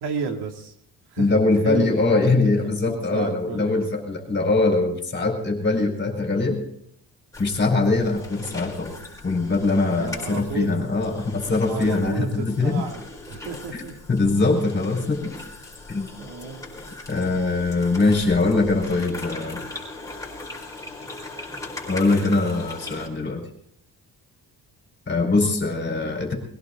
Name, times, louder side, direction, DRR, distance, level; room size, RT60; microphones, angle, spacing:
voice 1, 0.0-0.7 1.1-1.3 1.6-3.7 9.9-10.9 11.7-13.0 13.3-14.0 16.1-16.7, right 5 dB, 80° right, 3 dB, 2.8 m, -32 dB
voice 2, 1.2-6.6 7.4-8.9 9.2-12.8 13.7-13.8 14.1-15.3 15.9-16.1 17.1-19.6 21.9-23.4 25.1-26.3, left 3 dB, 30° left, 2 dB, 4.6 m, -22 dB
sound 1, 7.3-23.1, left 2 dB, 10° left, 4.5 m, -39 dB
22.0 x 16.5 x 3.9 m, 0.70 s
cardioid pair, 150°, 39 cm